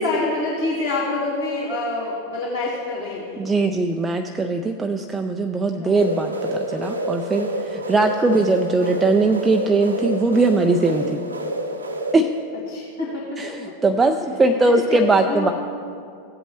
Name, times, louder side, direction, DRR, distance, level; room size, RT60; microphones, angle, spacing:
voice 1, 0.0-3.5 5.7-6.0 8.3-8.4 12.7-13.7 14.9-15.5, left 2 dB, 65° left, -10 dB, 2.5 m, -27 dB
voice 2, 3.4-11.2 12.1-12.3 13.4-15.5, right 3 dB, 15° right, 5 dB, 0.4 m, -20 dB
sound 1, 6.0-12.1, right 1 dB, 75° right, 0.8 m, -28 dB
17.5 x 8.0 x 3.0 m, 2.4 s
figure-of-eight pair, 90°, 0 cm